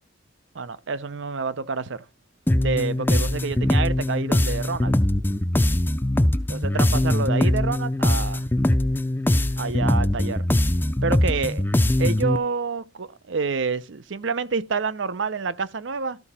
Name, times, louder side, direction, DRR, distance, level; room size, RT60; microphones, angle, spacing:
voice 1, 0.5-2.1 2.6-5.0 6.5-8.4 9.6-10.4 11.0-11.6 12.0-16.2, right 5 dB, 75° right, 0.6 m, -28 dB
sound 1, 2.5-12.4, left 1 dB, 10° left, 0.5 m, -22 dB
13.5 x 4.9 x 4.2 m
head